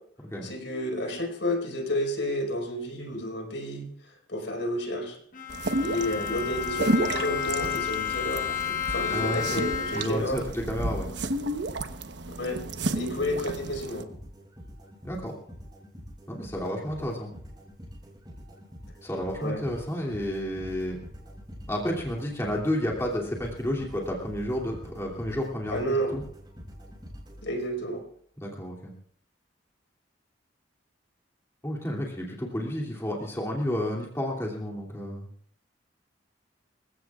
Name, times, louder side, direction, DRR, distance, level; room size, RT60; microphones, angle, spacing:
voice 1, 0.4-3.9 4.3-5.2 5.8-10.4 12.4-12.6 12.9-14.0 19.4-19.6 25.7-26.1 27.4-28.0, equal, 75° left, 2 dB, 4.8 m, -31 dB
Bowed string instrument, 5.3-10.4, left 8 dB, 45° left, 1.0 m, -31 dB
sound 1, 5.5-14.0, right 2 dB, 70° right, 1.1 m, -32 dB
voice 2, 9.1-9.6 9.9-11.1 15.0-15.3 16.3-17.3 19.0-21.0 21.7-26.2 28.4-28.9 31.6-35.2, left 1 dB, 15° left, -2 dB, 2.7 m, -31 dB
sound 2, 12.7-28.0, equal, 20° right, 4.9 m, -46 dB
26.5 x 16.0 x 2.4 m, 0.63 s
head